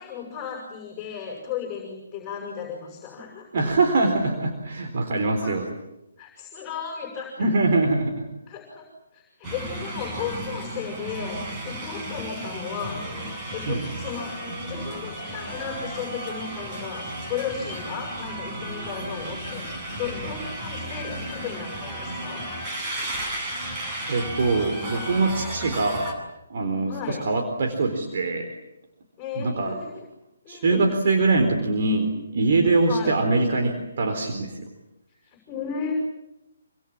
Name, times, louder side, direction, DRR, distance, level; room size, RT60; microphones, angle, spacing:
voice 1, 0.0-3.7 5.4-5.6 6.2-7.5 8.5-13.1 13.5-14.4 14.7-19.7 20.0-22.5 26.9-27.2 29.2-30.0 30.4-30.9 32.9-33.2 35.2-35.9, left 7 dB, 15° left, 0 dB, 6.9 m, -35 dB
voice 2, 3.5-5.6 7.4-8.3 13.7-13.8 24.1-26.1 26.5-28.5 29.4-29.8 30.5-34.7, right 3 dB, 50° right, 4 dB, 4.1 m, -23 dB
sound 1, 9.4-26.1, right 1 dB, 25° right, 7.8 m, -34 dB
27.5 x 26.0 x 7.5 m, 0.93 s
figure-of-eight pair, 135°, 0 cm